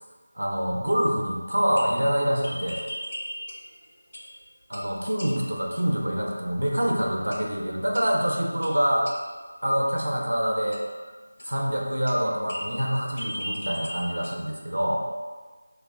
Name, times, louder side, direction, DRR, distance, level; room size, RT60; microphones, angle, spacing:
voice 1, 0.4-2.8 4.7-9.1 9.6-10.8 11.4-15.0, equal, 80° right, -1 dB, 0.6 m, -26 dB
sound 1, 1.6-3.8 4.1-4.4 4.7-5.7 7.3-7.6 7.9-9.4 10.7-11.8 12.1-14.5, equal, 70° left, 0.5 m, -38 dB
2.3 x 2.2 x 3.5 m, 1.4 s
figure-of-eight pair, 170°, 0 cm